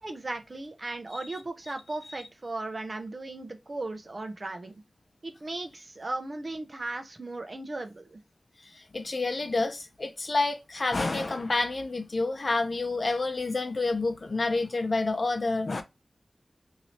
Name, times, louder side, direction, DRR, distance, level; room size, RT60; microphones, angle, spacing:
voice 1, 0.0-4.8 5.2-8.2, right 2 dB, 50° right, 0.7 m, -37 dB
voice 2, 8.8-15.8, left 3 dB, 60° left, 0.6 m, -28 dB
2.8 x 2.8 x 3.1 m
wide cardioid pair, 50°, 0 cm